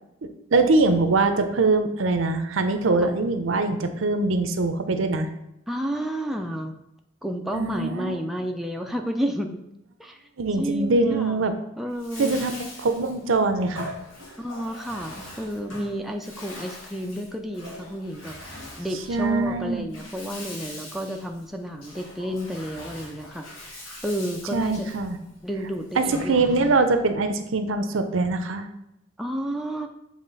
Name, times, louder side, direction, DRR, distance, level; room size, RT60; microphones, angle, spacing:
voice 1, 0.2-5.3 7.5-8.2 10.4-11.5 12.2-13.9 19.1-19.8 24.5-25.2 26.0-28.6, right 3 dB, 75° right, 8 dB, 0.6 m, -23 dB
voice 2, 5.7-6.7 7.2-9.6 10.0-10.3 10.6-11.5 11.8-12.4 14.4-24.9 25.4-26.8 29.2-29.9, equal, ahead, 3 dB, 0.4 m, -31 dB
Bathtub (filling or washing), 11.9-27.0, left 1 dB, 75° left, 1.8 m, -42 dB
7.4 x 3.2 x 4.0 m, 0.86 s
head